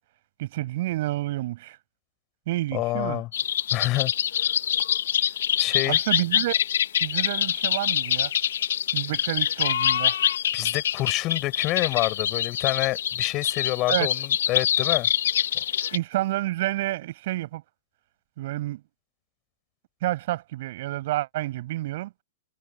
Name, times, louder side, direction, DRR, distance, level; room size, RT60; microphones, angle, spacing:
voice 1, 0.4-1.8 2.5-3.2 5.9-6.6 7.0-8.3 8.9-10.2 13.9-14.1 15.9-17.6 18.4-18.8 20.0-22.1, right 16 dB, 45° right, 6.9 m, -29 dB
voice 2, 2.7-3.3 3.7-4.1 5.6-6.0 10.5-15.1, left 18 dB, 30° left, 7.4 m, -27 dB
sound 1, 3.3-16.0, left 10 dB, 55° left, 1.8 m, -25 dB
figure-of-eight pair, 105°, 0 cm